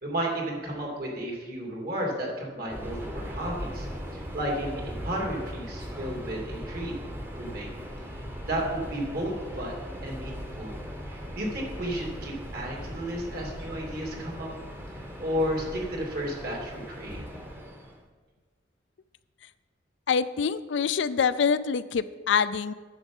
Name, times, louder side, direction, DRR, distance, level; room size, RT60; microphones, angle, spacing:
voice 1, 0.0-3.9 4.1-6.9 7.4-7.7 8.4-10.7 11.1-14.5 15.2-17.2, right 1 dB, 55° right, -1 dB, 2.7 m, -33 dB
Subway metro underground, 2.7-18.0, equal, 10° right, 0.9 m, -39 dB
voice 2, 20.1-22.7, left 6 dB, 80° left, 14 dB, 0.4 m, -25 dB
10.0 x 7.1 x 5.4 m, 1.4 s
head